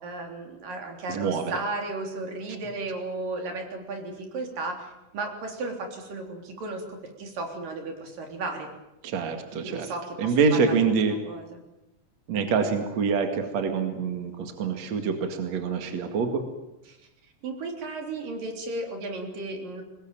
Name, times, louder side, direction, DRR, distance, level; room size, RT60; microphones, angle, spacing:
voice 1, 0.0-8.7 9.6-10.8 11.0-11.6 16.9-17.0 17.4-19.8, right 2 dB, 85° right, 3 dB, 5.3 m, -34 dB
voice 2, 1.1-1.4 9.0-9.9 10.2-11.2 12.3-16.4, right 5 dB, 55° right, 6 dB, 3.2 m, -25 dB
24.0 x 20.5 x 9.0 m, 0.94 s
omnidirectional pair, 3.8 m